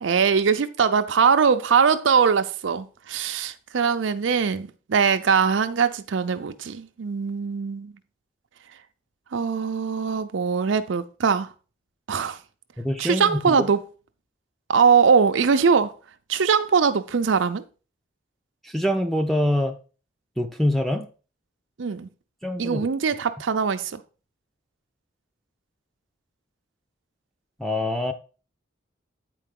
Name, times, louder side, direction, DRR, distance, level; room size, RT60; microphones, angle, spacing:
voice 1, 0.0-7.9 9.3-11.5 12.1-12.4 13.0-13.8 14.7-15.9 16.3-17.6 21.8-22.1 22.6-24.0, right 6 dB, 80° right, 0.5 m, -21 dB
voice 2, 12.8-13.6 18.6-19.8 20.4-21.1 22.4-22.9 27.6-28.1, left 1 dB, ahead, 0.5 m, -24 dB
8.5 x 4.6 x 3.7 m
head